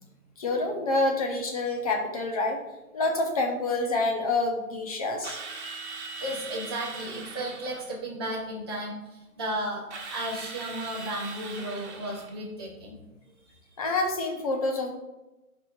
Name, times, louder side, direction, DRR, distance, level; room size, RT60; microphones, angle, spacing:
voice 1, 0.4-2.6 2.9-5.4 13.8-14.9, left 2 dB, 25° left, 2 dB, 0.8 m, -27 dB
Drill, 5.2-7.9 9.9-12.4, right 4 dB, 50° right, 1.3 m, -40 dB
voice 2, 6.2-13.0, right 1 dB, 20° right, -6 dB, 0.5 m, -34 dB
11.5 x 4.8 x 2.4 m, 1.0 s
figure-of-eight pair, 150°, 44 cm